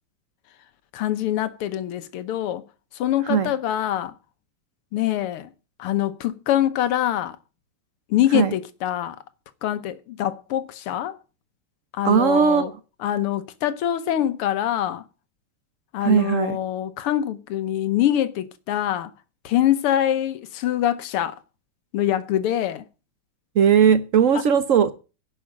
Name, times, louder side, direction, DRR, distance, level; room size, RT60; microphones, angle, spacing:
voice 1, 0.9-2.6 3.0-4.1 4.9-5.5 5.8-7.4 8.1-9.2 9.6-11.2 11.9-12.7 13.0-15.0 15.9-19.1 19.5-21.4 21.9-22.8, left 12 dB, 90° left, 1.9 m, -24 dB
voice 2, 12.0-12.7 16.0-16.6 23.5-24.9, right 7 dB, 65° right, 0.7 m, -18 dB
11.0 x 6.3 x 8.5 m
omnidirectional pair, 2.4 m